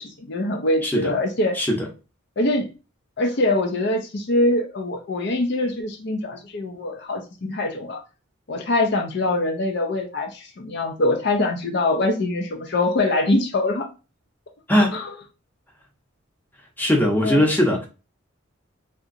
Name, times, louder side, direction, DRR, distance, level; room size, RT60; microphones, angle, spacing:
voice 1, 0.0-1.6 2.4-2.7 3.2-8.0 8.5-13.9 14.9-15.1 17.2-17.5, left 2 dB, 50° left, 0.5 m, -23 dB
voice 2, 0.8-1.1 1.6-1.9 14.7-15.0 16.8-17.9, equal, 10° left, 0.6 m, -20 dB
3.6 x 2.8 x 2.5 m
head